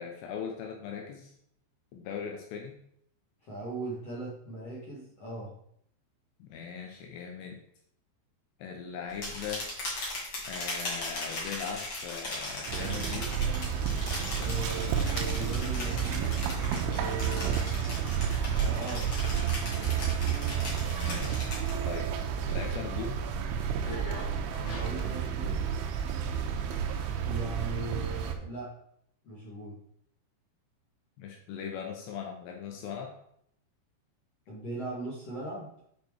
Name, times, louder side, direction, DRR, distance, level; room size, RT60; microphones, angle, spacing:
voice 1, 0.0-1.3 1.9-2.8 6.4-7.6 8.6-9.7 10.5-13.3 20.9-21.5 21.8-22.1 22.4-23.2 31.2-33.1, left 7 dB, 75° left, 2 dB, 2.7 m, -39 dB
voice 2, 3.4-5.5 14.4-16.4 16.9-17.6 18.6-19.1 24.6-25.7 27.2-28.7 29.2-29.8 34.5-35.7, right 2 dB, 50° left, -5 dB, 2.0 m, -39 dB
sound 1, 9.1-22.0 22.4-22.8 23.2-25.1, left 2 dB, 35° left, 2.7 m, -39 dB
sound 2, 12.7-28.3, right 7 dB, 85° right, 3.4 m, -31 dB
9.5 x 5.0 x 4.6 m, 0.70 s
omnidirectional pair, 5.4 m